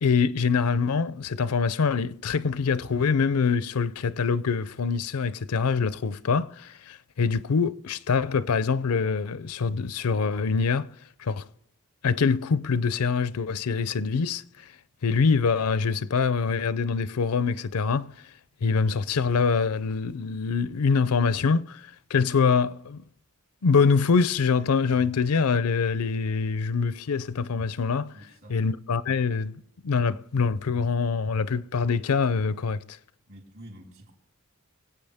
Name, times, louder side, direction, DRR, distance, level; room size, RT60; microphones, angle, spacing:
voice 1, 0.0-10.9 11.2-11.5 12.0-14.7 15.0-18.1 18.6-23.0 23.6-28.1 28.5-33.0, left 5 dB, 80° left, 0.5 m, -24 dB
voice 2, 28.1-28.6 33.2-34.1, right 1 dB, 60° right, 4.4 m, -47 dB
24.5 x 8.5 x 3.5 m
head